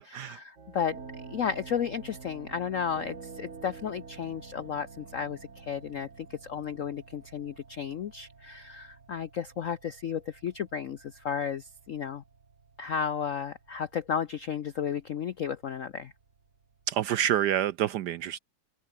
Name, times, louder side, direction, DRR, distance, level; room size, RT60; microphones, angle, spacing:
voice 1, 0.1-1.0 1.3-12.2 12.8-16.1, left 7 dB, 70° left, 0.7 m, -33 dB
sound 1, 0.6-17.0, right 5 dB, 35° right, 2.2 m, -49 dB
voice 2, 16.9-18.4, right 11 dB, 70° right, 1.0 m, -27 dB
open air
omnidirectional pair, 2.2 m